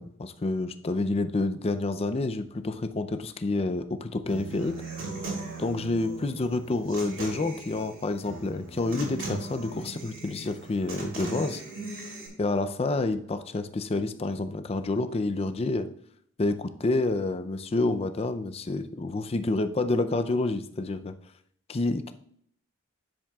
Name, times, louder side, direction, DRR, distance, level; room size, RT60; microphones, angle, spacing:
voice 1, 0.0-4.8 5.6-11.6 12.4-15.9 16.4-21.1 21.7-22.1, left 2 dB, 30° left, 9 dB, 0.4 m, -28 dB
Human voice / Acoustic guitar, 4.3-12.3, right 3 dB, 65° right, 3.1 m, -38 dB
10.0 x 7.3 x 2.3 m, 0.66 s
head